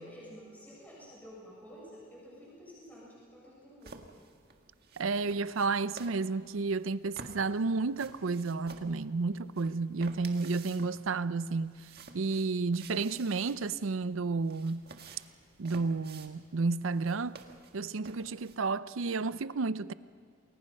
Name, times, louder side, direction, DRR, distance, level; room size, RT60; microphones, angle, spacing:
voice 1, 0.0-4.1, equal, 10° left, 7.4 m, -50 dB
sound 1, 3.8-18.6, right 4 dB, 50° right, 1.6 m, -52 dB
voice 2, 5.0-11.7 12.1-14.8 15.6-17.4 17.7-19.9, right 4 dB, 85° right, 0.6 m, -31 dB
29.0 x 21.5 x 5.4 m
head